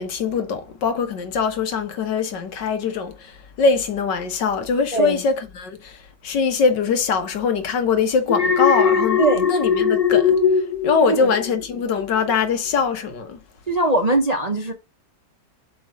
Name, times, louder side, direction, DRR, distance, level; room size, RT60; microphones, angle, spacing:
voice 1, 0.0-13.4, left 5 dB, 80° left, 1.8 m, -22 dB
voice 2, 4.9-5.2 9.2-9.5 11.1-11.3 13.7-14.7, right 2 dB, 40° right, 0.6 m, -20 dB
Alarm, 8.3-11.6 12.0-12.3, left 7 dB, 55° left, 0.4 m, -19 dB
7.6 x 3.8 x 5.1 m
omnidirectional pair, 1.9 m